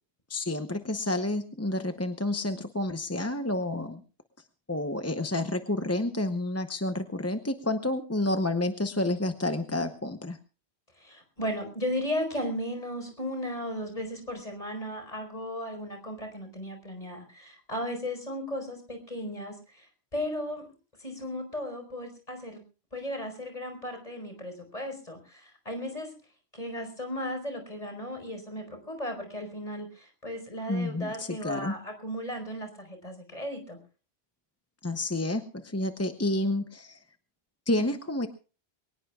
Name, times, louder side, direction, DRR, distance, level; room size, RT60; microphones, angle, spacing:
voice 1, 0.3-4.0 4.7-10.4 30.7-31.7 34.8-37.0 37.7-38.3, left 1 dB, 15° left, 7 dB, 0.8 m, -29 dB
voice 2, 11.0-20.7 21.0-22.6 22.9-26.1 26.5-33.8, left 1 dB, 35° left, 5 dB, 5.0 m, -35 dB
23.0 x 19.5 x 2.4 m, 0.36 s
omnidirectional pair, 1.1 m